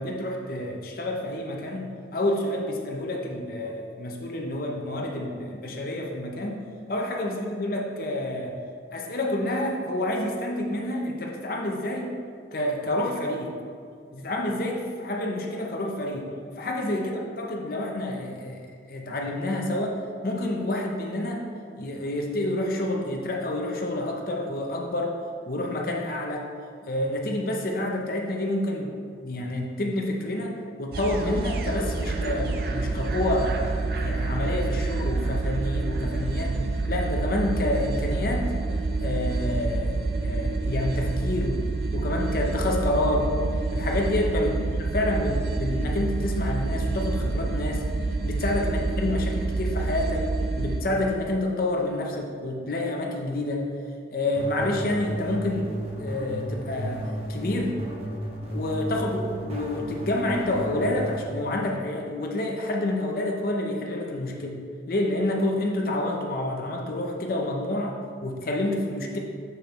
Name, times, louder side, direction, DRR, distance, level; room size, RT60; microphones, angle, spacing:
voice 1, 0.0-8.6 8.9-12.1 12.5-13.5 14.1-16.3 16.6-18.6 18.9-20.0 20.2-21.5 21.8-25.2 25.5-26.4 26.9-28.9 29.2-36.5 36.9-38.5 39.0-39.9 40.2-41.6 41.9-43.3 43.7-44.5 44.9-47.8 48.2-50.2 50.6-53.7 54.1-57.8 58.5-64.6 64.9-69.2, left 1 dB, 55° left, 0 dB, 0.6 m, -28 dB
sound 1, 30.9-50.8, right 3 dB, 55° right, 0.4 m, -28 dB
sound 2, 54.4-61.2, right 1 dB, 35° right, 0.9 m, -33 dB
6.2 x 5.1 x 3.0 m, 2.2 s
head